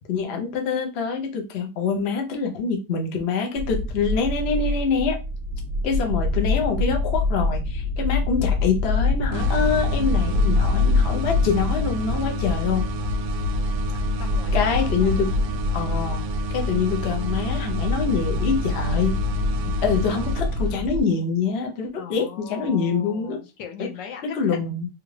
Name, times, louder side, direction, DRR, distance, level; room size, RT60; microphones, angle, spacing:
voice 1, 0.0-5.2 5.8-12.9 14.5-15.3 15.7-16.2 16.5-19.2 19.8-23.4 23.8-23.9 24.2-24.9, left 5 dB, 55° left, 2 dB, 0.7 m, -25 dB
sound 1, 3.5-21.0, left 3 dB, 60° right, 0.5 m, -25 dB
sound 2, 9.3-21.0, right 4 dB, 80° right, 1.2 m, -33 dB
voice 2, 14.2-15.3 22.0-24.6, left 7 dB, 80° left, 3 dB, 1.3 m, -39 dB
3.4 x 2.5 x 3.2 m, 0.29 s
omnidirectional pair, 2.0 m